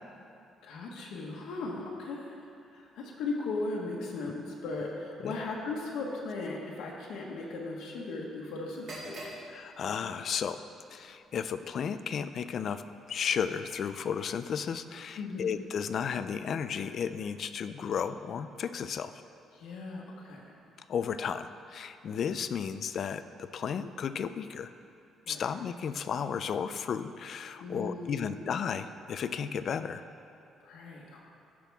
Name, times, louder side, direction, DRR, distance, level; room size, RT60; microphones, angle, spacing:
voice 1, 0.6-2.3 2.7-9.4 15.2-15.5 19.5-20.5 25.3-25.5 27.6-28.5 30.6-31.2, left 3 dB, 75° left, -2 dB, 1.3 m, -37 dB
sound 1, 8.7-16.5, right 1 dB, 45° right, 2.4 m, -52 dB
voice 2, 9.5-10.6 10.9-12.8 13.1-19.1 20.9-24.7 25.3-30.0, left 7 dB, 40° left, 11 dB, 0.3 m, -33 dB
15.5 x 6.0 x 3.5 m, 2.7 s
cardioid pair, 175°, 0 cm